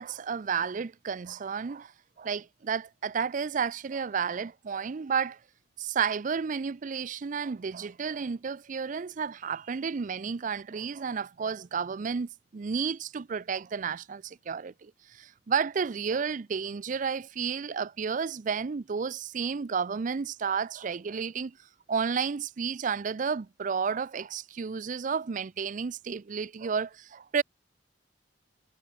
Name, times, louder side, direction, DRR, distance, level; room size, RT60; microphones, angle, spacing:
voice 1, 0.0-1.9 2.2-5.4 5.8-21.6 21.9-27.4, right 6 dB, 45° right, 0.4 m, -32 dB
head